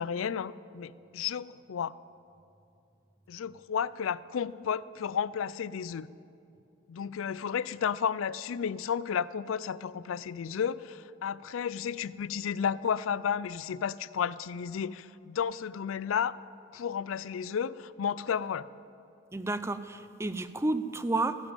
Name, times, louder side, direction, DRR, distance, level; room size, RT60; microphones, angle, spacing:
voice 1, 0.0-1.9 3.3-6.1 6.9-16.4 16.7-18.7, left 7 dB, 85° left, 19 dB, 0.4 m, -32 dB
voice 2, 19.3-21.4, right 2 dB, 15° right, 12 dB, 0.4 m, -31 dB
14.0 x 10.5 x 9.1 m, 2.7 s
head